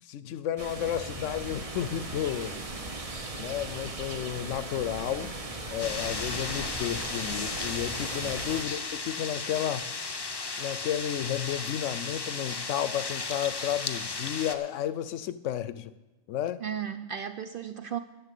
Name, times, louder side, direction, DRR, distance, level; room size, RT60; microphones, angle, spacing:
voice 1, 0.0-2.6 3.4-5.4 5.7-9.9 10.6-15.9 16.3-16.6, left 11 dB, 75° left, 0.9 m, -32 dB
sound 1, 0.6-8.6, right 2 dB, 30° right, 1.0 m, -38 dB
sound 2, 5.8-14.5, left 4 dB, 30° left, 0.5 m, -35 dB
voice 2, 16.6-18.0, right 8 dB, 60° right, 0.6 m, -35 dB
11.0 x 7.3 x 8.3 m
omnidirectional pair, 1.3 m